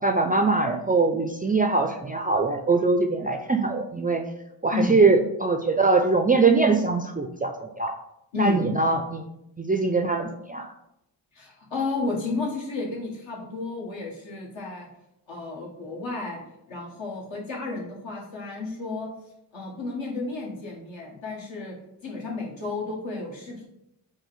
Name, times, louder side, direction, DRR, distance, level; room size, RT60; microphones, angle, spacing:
voice 1, 0.0-4.2 4.6-7.9 8.4-9.3 9.6-10.7, right 3 dB, 20° right, 4 dB, 0.3 m, -22 dB
voice 2, 8.3-8.6 11.3-14.9 15.3-16.4 16.7-19.1 19.5-21.7 22.0-23.7, left 3 dB, 70° left, -2 dB, 1.5 m, -32 dB
4.5 x 2.1 x 4.0 m, 0.83 s
supercardioid pair, 40°, 48 cm